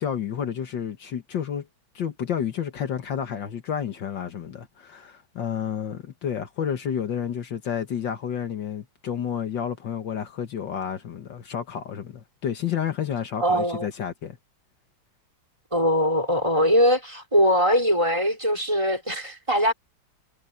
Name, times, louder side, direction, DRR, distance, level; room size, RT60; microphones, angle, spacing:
voice 1, 0.0-1.7 2.0-14.4, left 8 dB, 70° left, 2.0 m, -30 dB
voice 2, 13.4-13.9 15.7-19.7, equal, 15° right, 5.2 m, -21 dB
omnidirectional pair, 2.1 m